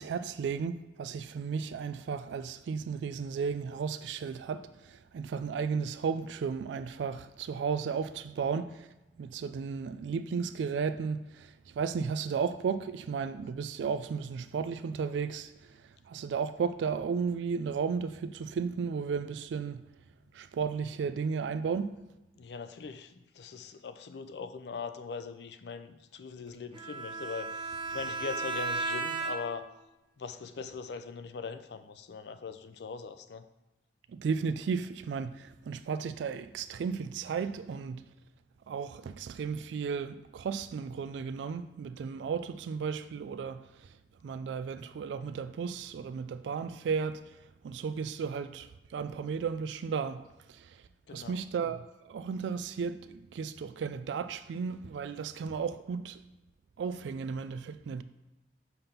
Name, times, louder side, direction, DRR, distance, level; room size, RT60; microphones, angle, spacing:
voice 1, 0.0-8.9 9.2-19.8 20.3-21.9 34.1-38.1 38.7-44.0 44.2-50.8 51.1-56.2 56.8-58.0, right 6 dB, 80° right, 0.3 m, -34 dB
voice 2, 22.4-29.7 30.2-33.5 51.1-51.4, left 5 dB, 70° left, 0.4 m, -41 dB
Bowed string instrument, 26.7-29.7, right 3 dB, 30° right, 0.6 m, -35 dB
5.7 x 3.5 x 5.7 m
head